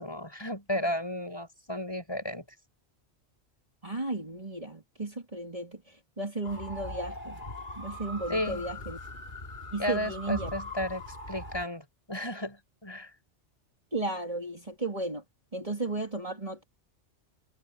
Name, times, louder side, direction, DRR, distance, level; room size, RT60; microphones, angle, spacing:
voice 1, 0.0-2.4 8.3-8.7 9.8-13.1, left 1 dB, 20° left, 7.7 m, -33 dB
voice 2, 3.8-7.4 7.8-9.0 9.7-10.5 13.9-15.2 15.5-16.6, right 2 dB, 30° right, 3.5 m, -34 dB
sound 1, 6.4-11.7, left 1 dB, 45° left, 4.1 m, -41 dB
omnidirectional pair, 1.2 m